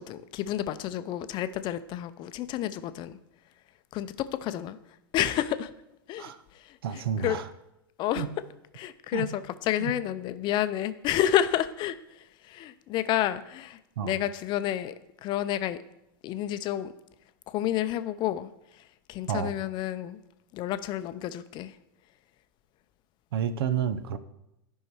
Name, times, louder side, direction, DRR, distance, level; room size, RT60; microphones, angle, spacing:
voice 1, 0.0-3.2 3.9-4.8 5.1-5.7 6.1-7.4 8.0-8.3 8.7-14.9 15.2-15.8 16.2-16.9 17.5-18.8 19.1-20.2 20.5-21.8, left 12 dB, 35° left, 12 dB, 0.6 m, -30 dB
voice 2, 6.8-7.5 8.2-8.3 9.1-9.3 9.8-10.0 14.0-14.1 19.3-19.6 23.3-24.2, right 8 dB, 70° right, 13 dB, 0.7 m, -30 dB
11.0 x 5.5 x 4.7 m, 0.88 s
hypercardioid pair, 110°, 13 cm